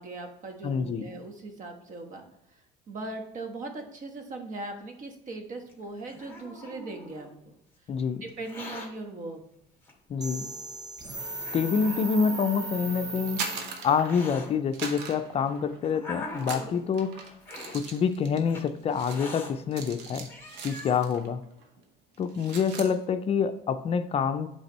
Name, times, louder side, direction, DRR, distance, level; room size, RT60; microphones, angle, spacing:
voice 1, 0.0-2.6 2.9-7.5 8.2-9.4, right 2 dB, 50° right, 1.2 m, -39 dB
voice 2, 0.6-1.1 7.9-8.2 10.1-10.5 11.5-13.4 13.8-17.2 17.7-20.3 20.6-21.5 22.2-24.5, left 6 dB, 35° left, 0.4 m, -27 dB
Hiss, 5.7-7.3 8.3-8.9 9.8-9.9 10.8-10.9 11.4-12.4 13.3-14.5 15.3-16.8 17.4-17.8 18.5-18.6 19.1-19.5 20.0-20.1 20.3-21.0, left 2 dB, 15° left, 1.9 m, -42 dB
sound 1, 10.2-14.1, right 2 dB, 20° right, 0.8 m, -37 dB
sound 2, 13.2-14.4 14.7-16.0 16.4-21.3 21.6-21.8 22.1-23.0, right 5 dB, 85° right, 1.0 m, -40 dB
8.1 x 3.3 x 4.3 m
cardioid pair, 115°, 17 cm